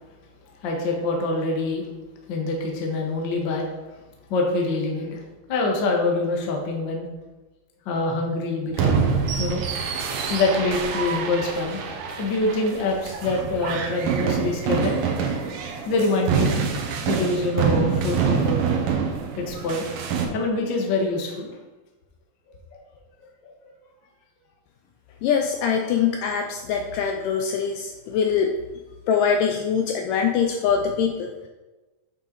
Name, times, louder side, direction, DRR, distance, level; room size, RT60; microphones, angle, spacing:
voice 1, 0.6-1.9 2.3-3.7 4.3-5.2 5.5-7.1 7.8-9.0 9.4-9.6 10.3-11.8 12.2-15.2 15.8-16.5 17.0-18.6 19.4-19.9 20.2-21.5 22.7-22.8 23.4-23.7, left 2 dB, 65° left, 0 dB, 1.1 m, -25 dB
sound 1, 8.7-20.3, right 6 dB, 75° right, 2.4 m, -26 dB
voice 2, 25.2-28.5 29.1-31.5, left 7 dB, 80° left, 4 dB, 2.0 m, -23 dB
8.5 x 5.8 x 3.9 m, 1.1 s
omnidirectional pair, 4.3 m